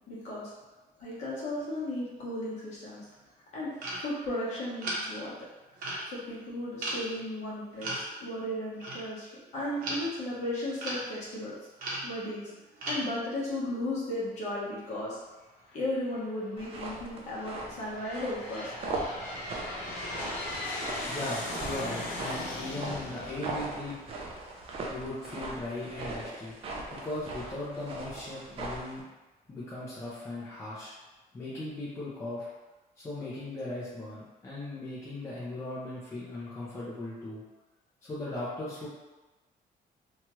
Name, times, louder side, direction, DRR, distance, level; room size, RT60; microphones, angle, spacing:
voice 1, 0.1-0.5 1.0-3.1 3.5-3.7 4.0-5.3 6.1-11.5 12.0-12.5 12.8-15.2 15.7-18.7, left 1 dB, 45° left, -7 dB, 1.0 m, -35 dB
sound 1, 3.8-4.0 4.8-5.0 5.8-6.1 6.8-7.0 7.8-8.1 8.8-9.0 9.5-10.3 10.8-11.0 11.8-12.1 12.5-13.1, right 1 dB, 60° right, 0.8 m, -35 dB
Aircraft, 15.7-16.3 17.0-24.5, left 1 dB, 80° left, 0.8 m, -39 dB
sound 2, 16.6-29.0, right 2 dB, 35° right, 0.4 m, -40 dB
voice 2, 21.1-24.0 24.9-26.5 26.9-29.0 29.5-30.9 31.3-32.5 33.0-37.4 38.0-38.9, left 1 dB, 15° left, -9 dB, 0.5 m, -38 dB
2.9 x 2.3 x 3.0 m, 1.1 s
cardioid pair, 175°, 16 cm